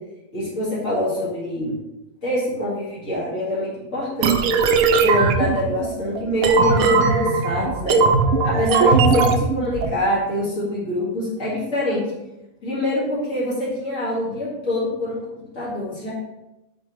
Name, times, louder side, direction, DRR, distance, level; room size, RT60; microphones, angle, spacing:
voice 1, 0.3-1.7 2.2-4.4 5.0-8.0 8.4-12.0 12.6-15.2 15.5-16.1, left 1 dB, 65° left, -8 dB, 2.4 m, -25 dB
sound 1, 4.2-9.9, right 4 dB, 85° right, 1.1 m, -19 dB
9.4 x 4.1 x 3.1 m, 0.97 s
omnidirectional pair, 1.4 m